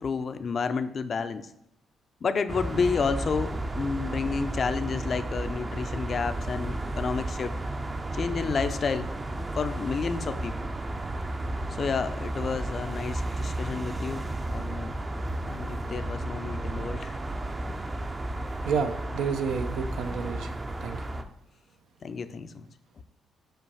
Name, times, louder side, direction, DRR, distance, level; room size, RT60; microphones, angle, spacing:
voice 1, 0.0-1.5 2.2-7.5 8.1-9.1 9.6-10.7 11.7-14.9 15.5-17.2 22.0-22.7, left 5 dB, 45° left, 10 dB, 0.5 m, -30 dB
sound 1, 2.5-21.2, right 1 dB, 25° right, 0.6 m, -33 dB
voice 2, 18.6-21.0, right 6 dB, 80° right, 6 dB, 0.8 m, -30 dB
5.7 x 5.1 x 5.5 m, 0.75 s
cardioid pair, 90°, 0 cm